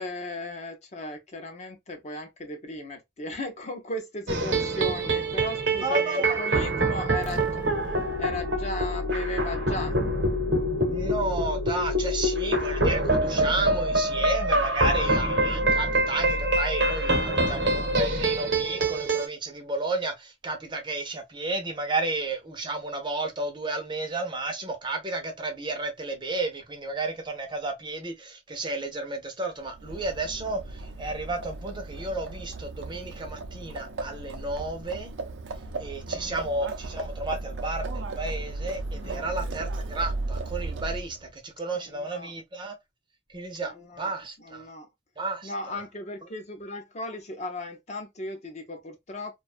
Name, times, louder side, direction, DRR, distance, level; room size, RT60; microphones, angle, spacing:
voice 1, 0.0-7.6 8.2-9.9 36.1-36.4 38.9-39.3 41.7-42.3 43.6-44.1 44.4-44.9 45.4-49.4, left 1 dB, 40° left, 0.6 m, -36 dB
sound 1, 4.3-19.3, right 1 dB, 70° right, 0.8 m, -26 dB
voice 2, 5.8-6.4 10.9-35.1 35.8-42.8 43.3-44.7 45.2-45.8, right 2 dB, 25° right, 0.6 m, -32 dB
sound 2, 7.2-18.7, left 1 dB, 85° left, 0.6 m, -36 dB
Livestock farm animals working animals, 29.6-41.3, right 2 dB, 90° right, 0.5 m, -35 dB
2.5 x 2.2 x 2.4 m
head